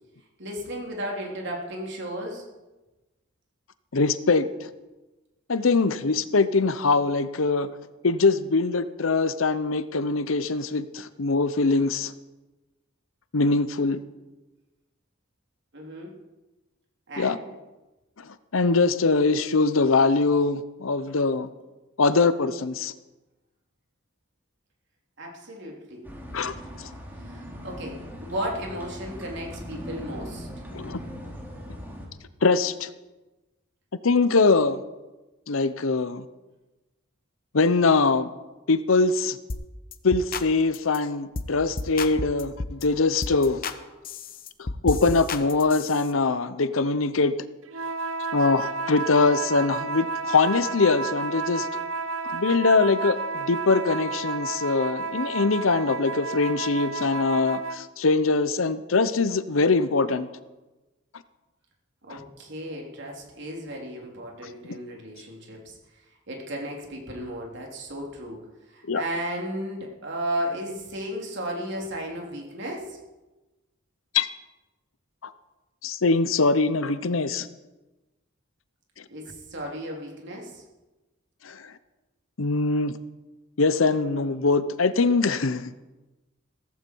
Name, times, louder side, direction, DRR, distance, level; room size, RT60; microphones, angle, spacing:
voice 1, 0.4-2.4 15.7-16.1 17.1-17.5 25.2-26.0 27.2-30.5 62.0-65.8 66.3-68.4 68.7-73.0 79.1-80.6, equal, 60° right, 0 dB, 3.4 m, -34 dB
voice 2, 3.9-4.7 5.5-7.7 8.0-12.1 13.3-14.0 17.2-17.4 18.5-21.5 22.0-22.9 26.3-26.9 30.7-31.0 32.4-32.9 34.0-34.8 35.5-36.3 37.5-38.3 38.7-39.4 40.0-43.6 44.6-47.3 48.3-51.7 52.2-60.3 68.9-69.0 74.1-74.3 75.8-77.5 81.4-81.7 82.4-82.9 83.6-85.7, left 3 dB, 80° left, 13 dB, 0.8 m, -22 dB
sound 1, 26.0-32.1, equal, 10° right, 3.0 m, -39 dB
sound 2, 39.5-39.7 39.9-40.5 40.7-41.0 41.3-41.5 41.8-42.8 43.2-43.8 44.0-46.1, left 3 dB, 45° left, 0.9 m, -32 dB
sound 3, 47.7-57.9, right 3 dB, 85° right, 0.8 m, -31 dB
15.5 x 15.0 x 4.6 m, 1.1 s
head